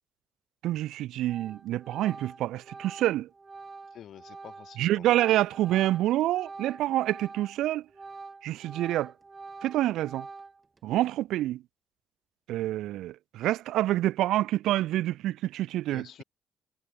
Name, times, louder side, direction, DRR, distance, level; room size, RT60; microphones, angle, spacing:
voice 1, 0.6-3.3 4.8-7.8 8.4-9.1 9.6-10.3 10.8-11.6 12.5-16.2, right 14 dB, 85° right, 1.2 m, -27 dB
Organ, 0.7-0.9 1.3-7.6 7.9-10.8, right 4 dB, 25° right, 6.3 m, -46 dB
voice 2, 3.9-5.1 15.9-16.2, left 10 dB, 65° left, 3.1 m, -48 dB
cardioid pair, 90°, 0 cm